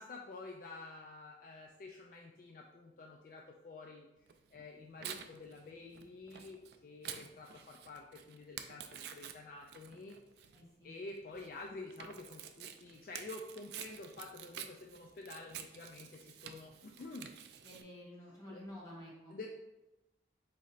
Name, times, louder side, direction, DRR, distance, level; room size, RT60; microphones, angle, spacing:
voice 1, 0.0-4.1 4.5-10.2 10.8-17.3 18.5-18.6 19.3-19.5, left 3 dB, 50° left, 1 dB, 0.3 m, -49 dB
Tearing, 4.3-17.8, right 9 dB, 65° right, 0.3 m, -50 dB
voice 2, 10.5-10.9 17.6-19.3, left 1 dB, 20° left, -6 dB, 1.5 m, -51 dB
4.2 x 3.1 x 3.9 m, 0.98 s
head